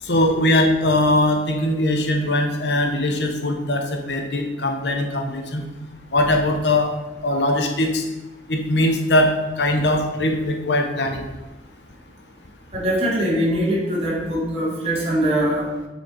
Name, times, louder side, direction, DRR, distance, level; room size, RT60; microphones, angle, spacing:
voice 1, 0.0-5.6 6.1-6.9 7.2-8.0 8.5-11.2, left 1 dB, 75° left, 4 dB, 1.0 m, -21 dB
voice 2, 12.7-15.7, right 1 dB, 35° right, -6 dB, 2.4 m, -22 dB
8.2 x 4.7 x 4.3 m, 1.1 s
head